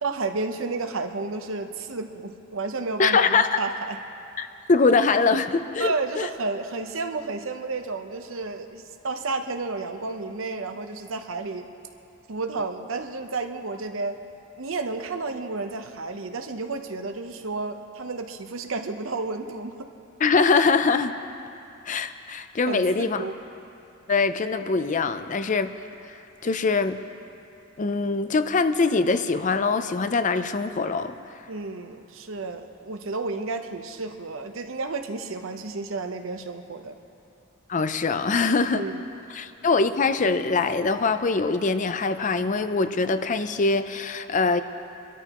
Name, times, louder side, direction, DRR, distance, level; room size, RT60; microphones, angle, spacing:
voice 1, 0.0-4.0 5.8-11.7 12.3-14.2 14.6-19.8 22.7-23.4 31.5-37.0 38.7-39.0 39.3-39.4, right 3 dB, 75° right, 6 dB, 0.9 m, -31 dB
voice 2, 3.0-3.6 4.4-6.3 20.2-21.1 21.8-23.2 24.1-25.7 26.4-27.0 27.8-31.2 37.7-38.9 39.3-44.6, left 4 dB, 40° left, 11 dB, 0.5 m, -23 dB
25.5 x 13.0 x 3.0 m, 2.7 s
head